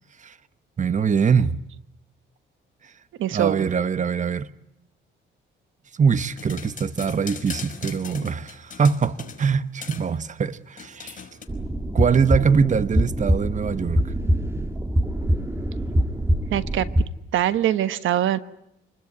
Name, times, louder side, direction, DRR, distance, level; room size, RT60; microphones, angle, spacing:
voice 1, 0.8-1.6 2.8-2.9 3.3-4.5 6.0-11.2 11.9-14.1, right 6 dB, 40° right, 1.3 m, -23 dB
voice 2, 3.2-3.6 16.5-16.9 17.3-18.4, right 12 dB, 80° right, 1.3 m, -22 dB
sound 1, 6.2-9.5 9.8-10.1 10.8-11.5, left 6 dB, 40° left, 5.4 m, -39 dB
sound 2, 11.5-17.0, equal, 15° right, 2.1 m, -24 dB
28.0 x 20.5 x 9.6 m
cardioid pair, 90°, 20 cm